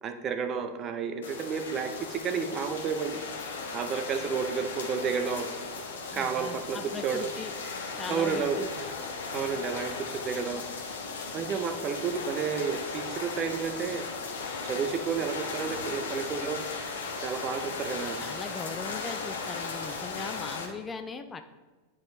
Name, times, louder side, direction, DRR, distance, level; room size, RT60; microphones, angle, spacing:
voice 1, 0.0-3.2 3.7-5.5 6.1-7.3 8.1-8.6 9.3-10.6 11.3-14.0 14.6-16.6 17.2-18.2, right 6 dB, 30° right, 8 dB, 0.6 m, -31 dB
sound 1, 1.2-20.7, left 4 dB, 65° left, 1.1 m, -37 dB
voice 2, 6.1-7.5 7.9-8.7 18.2-21.4, left 5 dB, 15° left, 8 dB, 0.4 m, -39 dB
10.5 x 4.7 x 2.8 m, 1.3 s
figure-of-eight pair, 90°, 0 cm